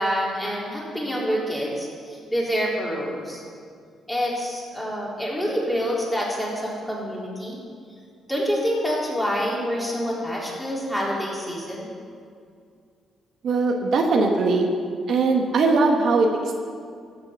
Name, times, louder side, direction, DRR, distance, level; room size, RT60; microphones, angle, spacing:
voice 1, 0.0-3.4 4.1-7.6 8.3-11.9, equal, 5° left, -5 dB, 3.8 m, -27 dB
voice 2, 13.4-14.7 15.1-16.6, right 3 dB, 65° right, 2 dB, 1.3 m, -20 dB
14.5 x 6.7 x 7.0 m, 2.3 s
cardioid pair, 90°, 0 cm